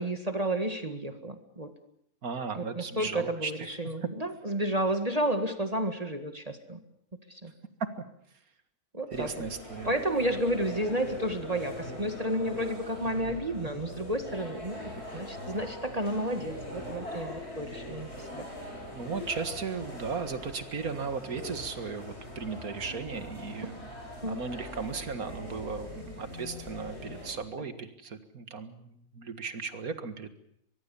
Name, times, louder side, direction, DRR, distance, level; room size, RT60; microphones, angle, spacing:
voice 1, 0.0-1.7 2.6-6.8 7.3-7.5 8.9-9.5 9.8-18.5 24.2-24.4, right 1 dB, 25° right, 8 dB, 1.9 m, -31 dB
voice 2, 2.2-3.5 4.0-4.1 9.1-9.9 13.1-13.4 18.9-23.8 24.1-30.3, right 5 dB, 75° right, 10 dB, 2.3 m, -36 dB
sound 1, 9.1-27.3, left 1 dB, 45° left, 8.1 m, -42 dB
23.5 x 22.5 x 7.1 m, 0.72 s
omnidirectional pair, 1.5 m